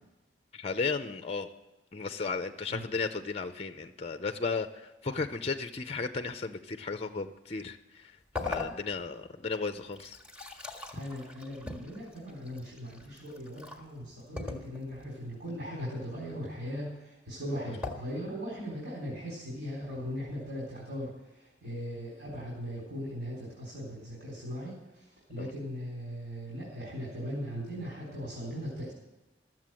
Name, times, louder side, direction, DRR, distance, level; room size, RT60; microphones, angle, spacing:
voice 1, 0.5-1.5 1.9-8.1 8.4-10.2 25.4-25.5, left 4 dB, 35° left, 9 dB, 0.6 m, -34 dB
sound 1, 8.3-9.3 9.8-13.8 14.4-15.1 17.8-17.9, left 3 dB, 5° right, 1.7 m, -40 dB
voice 2, 10.9-28.9, equal, 60° right, -5 dB, 4.0 m, -39 dB
14.0 x 7.6 x 7.5 m, 1.1 s
head